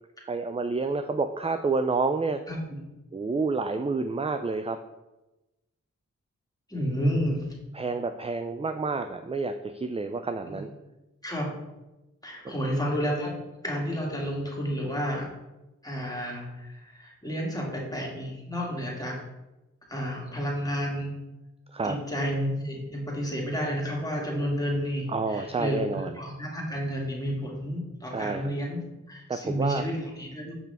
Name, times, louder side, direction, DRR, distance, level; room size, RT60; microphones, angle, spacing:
voice 1, 0.2-2.4 3.1-4.8 7.7-10.7 12.4-12.5 21.7-22.0 25.1-26.2 28.1-28.5 29.3-29.8, right 4 dB, 20° right, 8 dB, 0.4 m, -29 dB
voice 2, 6.7-7.5 10.5-10.6 11.2-11.5 12.2-13.3 13.6-15.3 15.8-19.2 19.9-21.1 21.8-28.8 29.1-30.6, equal, 10° left, -3 dB, 2.2 m, -31 dB
6.0 x 5.8 x 3.5 m, 1.0 s
cardioid pair, 40°, 30 cm